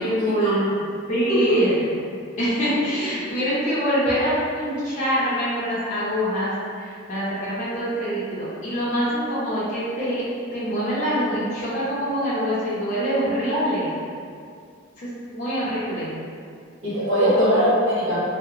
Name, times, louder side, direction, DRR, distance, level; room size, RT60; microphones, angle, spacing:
voice 1, 0.0-1.7 2.4-10.2 10.5-13.9 15.0-16.2 17.2-17.6, equal, 35° left, -10 dB, 0.6 m, -25 dB
voice 2, 16.8-18.2, equal, 70° right, -11 dB, 1.1 m, -21 dB
2.9 x 2.0 x 2.4 m, 2.3 s
head